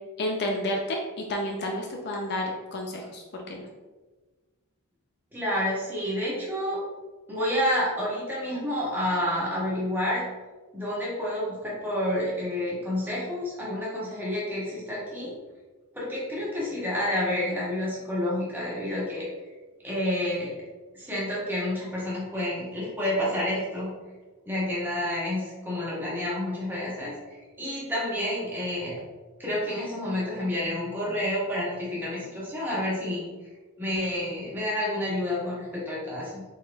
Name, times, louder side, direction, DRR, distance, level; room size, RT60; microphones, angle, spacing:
voice 1, 0.2-3.7, left 1 dB, 50° left, 1 dB, 0.4 m, -31 dB
voice 2, 5.3-6.8 7.3-10.2 10.7-15.3 15.9-19.3 19.8-20.5 21.0-23.9 24.5-28.9 29.4-33.3 33.8-36.4, left 1 dB, 10° right, -7 dB, 1.2 m, -29 dB
4.1 x 4.0 x 2.2 m, 1.3 s
head